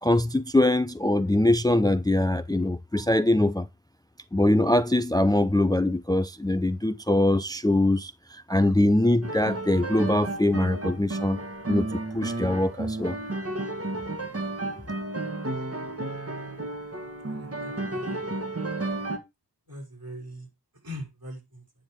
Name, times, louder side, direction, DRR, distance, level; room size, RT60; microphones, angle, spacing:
voice 1, 0.0-3.7 4.3-11.4 11.7-11.9 12.1-13.2, left 1 dB, 10° left, 0.5 m, -23 dB
sound 1, 9.2-19.2, right 2 dB, 40° right, 1.6 m, -32 dB
voice 2, 17.4-18.3 19.7-20.5 20.7-21.6, equal, 65° right, 5.3 m, -41 dB
9.1 x 6.3 x 4.7 m
wide cardioid pair, 60°, 38 cm